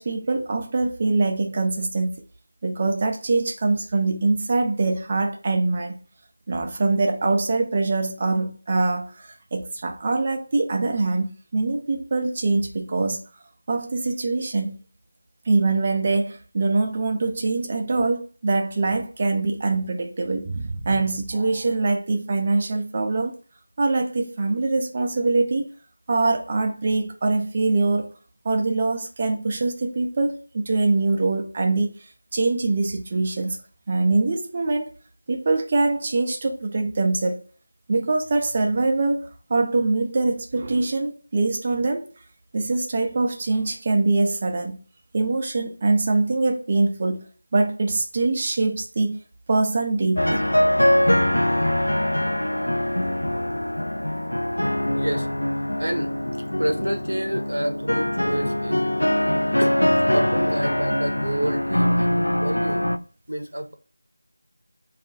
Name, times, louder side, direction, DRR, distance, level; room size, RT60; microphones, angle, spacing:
voice 1, 0.0-2.1 2.6-6.0 6.5-13.2 13.7-14.8 15.5-23.3 23.8-25.6 26.1-28.1 28.4-32.0 32.3-33.6 33.9-34.9 35.3-37.4 37.9-39.2 39.5-42.1 42.5-44.8 45.1-47.3 47.5-49.2 49.5-50.5, right 3 dB, 25° right, 0.4 m, -23 dB
sound 1, 50.2-63.0, left 1 dB, 80° left, 0.3 m, -23 dB
voice 2, 54.9-55.3 55.8-56.1 56.6-58.8 59.6-62.9 63.3-63.7, right 1 dB, 65° right, 0.7 m, -28 dB
2.4 x 2.2 x 3.9 m
figure-of-eight pair, 170°, 0 cm